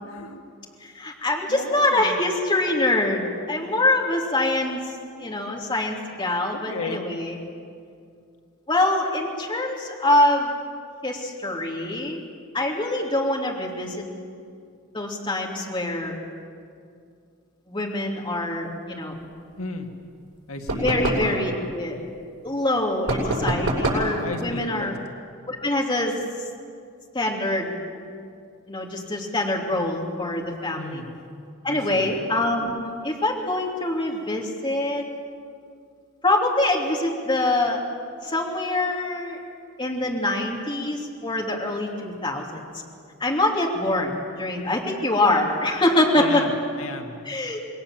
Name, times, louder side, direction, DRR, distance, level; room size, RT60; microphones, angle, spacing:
voice 1, 0.0-0.4 1.5-2.2 6.5-7.0 19.6-19.9 20.5-20.8 24.2-24.9 30.8-31.1 31.7-32.1 46.1-46.5 46.8-47.2, left 3 dB, 85° left, 4 dB, 2.0 m, -34 dB
voice 2, 0.8-4.8 5.2-7.4 8.7-10.5 11.0-12.2 12.5-14.0 14.9-16.1 17.7-19.2 20.7-22.0 22.4-24.9 25.5-26.2 27.1-27.7 28.7-31.0 31.6-35.0 36.2-37.8 38.2-39.4 39.8-42.6 43.2-46.4 47.2-47.6, left 1 dB, 20° left, -1 dB, 2.9 m, -24 dB
sound 1, 20.7-21.3 23.1-24.1, right 1 dB, 85° right, 7.9 m, -24 dB
27.5 x 21.0 x 7.6 m, 2.3 s
head